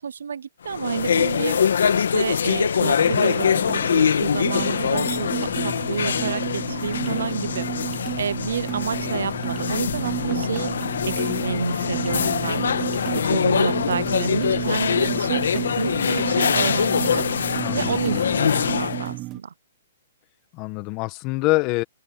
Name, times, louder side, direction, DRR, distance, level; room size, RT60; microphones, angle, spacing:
voice 1, 0.0-1.6 1.9-7.7 8.2-10.7 11.0-12.6 13.1-17.3 17.7-19.5, right 7 dB, 85° right, 0.6 m, -29 dB
sound 1, 0.7-19.1, left 7 dB, 80° left, 1.5 m, -23 dB
sound 2, 3.0-19.4, right 18 dB, 30° right, 0.4 m, -33 dB
voice 2, 17.6-18.4 20.5-21.8, left 22 dB, 30° left, 1.7 m, -25 dB
hypercardioid pair, 150°, 0 cm